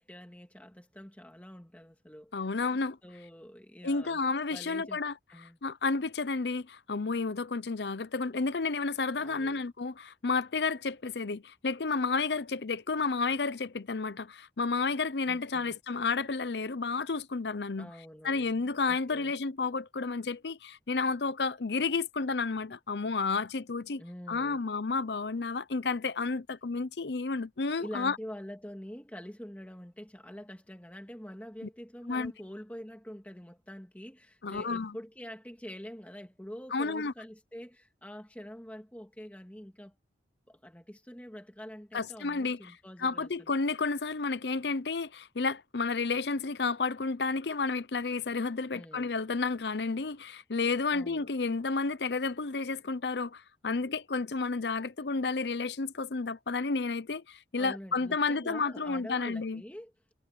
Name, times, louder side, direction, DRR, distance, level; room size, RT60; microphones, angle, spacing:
voice 1, 0.0-4.2 4.5-5.0 5.3-5.6 9.2-9.6 15.2-15.8 17.8-19.3 23.9-24.6 27.8-40.0 40.5-43.5 48.7-49.1 50.9-51.3 57.6-59.9, equal, 10° left, 2.1 m, -46 dB
voice 2, 2.3-3.0 3.8-5.1 5.6-17.9 18.2-28.2 32.1-32.3 34.4-35.0 36.7-37.1 41.9-42.6 43.0-59.6, left 4 dB, 70° left, 0.7 m, -31 dB
head